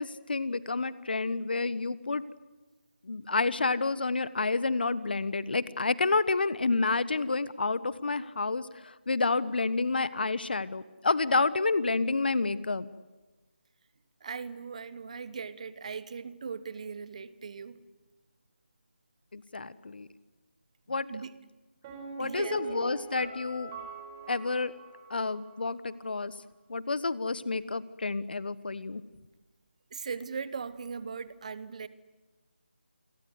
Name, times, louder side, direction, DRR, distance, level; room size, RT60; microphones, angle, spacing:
voice 1, 0.0-2.2 3.0-12.9 19.3-20.1 20.9-21.1 22.2-23.7 24.3-24.7 25.1-26.3 26.7-29.0, left 3 dB, 60° left, 16 dB, 1.3 m, -29 dB
voice 2, 14.2-17.8 21.1-21.4 22.2-22.6 29.9-31.9, right 5 dB, 35° right, 16 dB, 1.2 m, -39 dB
Piano, 21.8-25.6 25.9-26.0, right 4 dB, 20° right, 4.8 m, -42 dB
28.5 x 23.0 x 8.1 m, 1.2 s
figure-of-eight pair, 160°, 6 cm